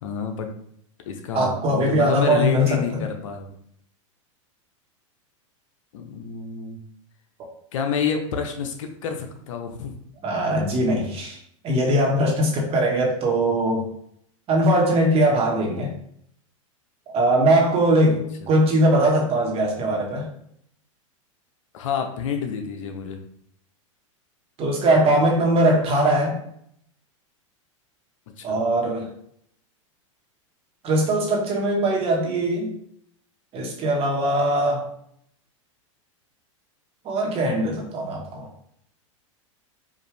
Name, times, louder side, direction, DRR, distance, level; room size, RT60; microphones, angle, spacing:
voice 1, 0.0-0.5 1.1-3.5 5.9-6.8 7.7-10.0 18.1-18.5 21.7-23.2 28.4-28.6, left 6 dB, 75° left, 5 dB, 0.8 m, -29 dB
voice 2, 1.3-3.0 10.2-11.4 11.6-13.8 14.5-15.9 17.1-20.3 24.6-26.4 28.4-29.1 30.8-32.7 33.5-34.9 37.0-38.5, right 1 dB, 35° right, 0 dB, 1.3 m, -21 dB
5.0 x 2.6 x 3.3 m, 0.69 s
hypercardioid pair, 115°, 17 cm